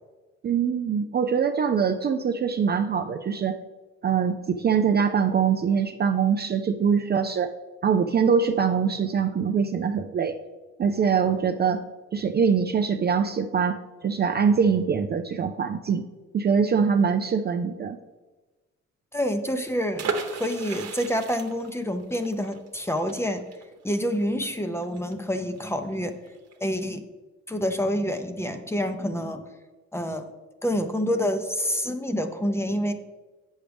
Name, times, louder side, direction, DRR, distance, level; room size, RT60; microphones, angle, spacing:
voice 1, 0.4-3.6 4.0-7.5 7.8-10.4 10.8-11.8 12.1-16.0 16.3-18.0, right 6 dB, 35° right, 7 dB, 0.4 m, -23 dB
voice 2, 19.1-20.1 20.3-23.4 23.8-26.2 26.6-27.0 27.5-29.4 29.9-30.3 30.6-32.9, equal, 10° left, 7 dB, 0.7 m, -27 dB
sound 1, 20.0-25.6 25.9-26.0 26.3-26.6, right 5 dB, 60° right, 1.1 m, -35 dB
8.4 x 6.3 x 3.4 m, 1.2 s
cardioid pair, 90°, 30 cm